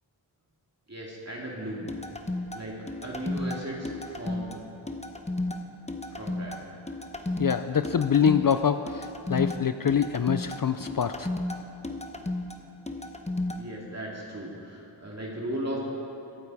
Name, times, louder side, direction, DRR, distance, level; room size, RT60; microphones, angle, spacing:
voice 1, 0.9-1.9 2.5-2.8 3.0-4.5 6.2-6.5 13.5-15.8, right 1 dB, 35° right, -4 dB, 2.5 m, -36 dB
sound 1, 1.9-13.6, left 2 dB, 15° left, 1.0 m, -34 dB
voice 2, 7.4-11.3, left 7 dB, 50° left, 10 dB, 0.5 m, -25 dB
23.0 x 8.5 x 4.8 m, 3.0 s
wide cardioid pair, 55°, 45 cm